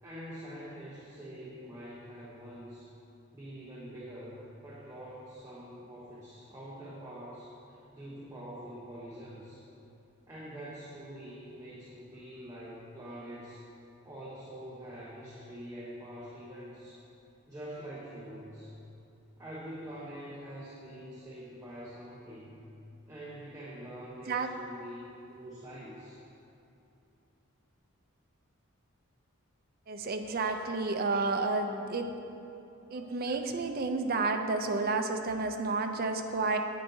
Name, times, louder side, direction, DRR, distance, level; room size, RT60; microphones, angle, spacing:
voice 1, 0.0-2.9 3.3-9.6 10.3-13.6 14.0-17.0 17.5-18.7 19.4-22.6 23.1-25.1 25.3-26.2, equal, 15° right, -8 dB, 1.0 m, -45 dB
voice 2, 29.9-32.1 32.9-36.6, right 3 dB, 45° right, 5 dB, 0.5 m, -31 dB
9.2 x 8.7 x 2.8 m, 2.8 s
head